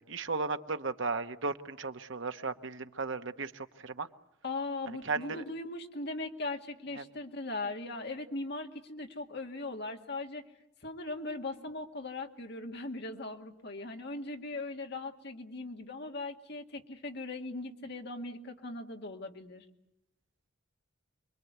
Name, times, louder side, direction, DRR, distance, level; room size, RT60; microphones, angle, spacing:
voice 1, 0.0-4.1 5.0-5.4 7.0-7.1, right 4 dB, 65° right, 8 dB, 1.2 m, -35 dB
voice 2, 4.4-10.4 10.8-19.7, left 2 dB, 55° left, 3 dB, 2.1 m, -39 dB
28.0 x 22.5 x 8.2 m, 0.84 s
head